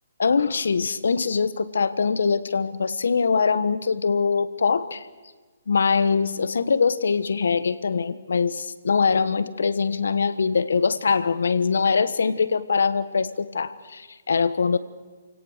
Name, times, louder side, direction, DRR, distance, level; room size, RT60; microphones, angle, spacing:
voice 1, 0.2-5.1 5.7-14.8, left 5 dB, 80° left, 15 dB, 1.3 m, -23 dB
28.5 x 17.0 x 6.6 m, 1.3 s
hypercardioid pair, 155°, 0 cm